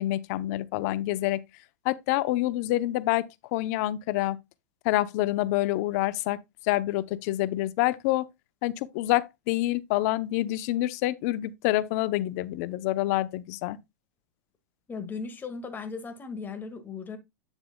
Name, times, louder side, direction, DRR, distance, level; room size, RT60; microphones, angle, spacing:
voice 1, 0.0-1.4 1.8-4.4 4.8-8.3 8.6-13.8, left 16 dB, 55° left, 0.7 m, -27 dB
voice 2, 14.9-17.2, left 5 dB, 20° left, 1.8 m, -37 dB
9.1 x 6.8 x 2.2 m
hypercardioid pair, 120°, 10 cm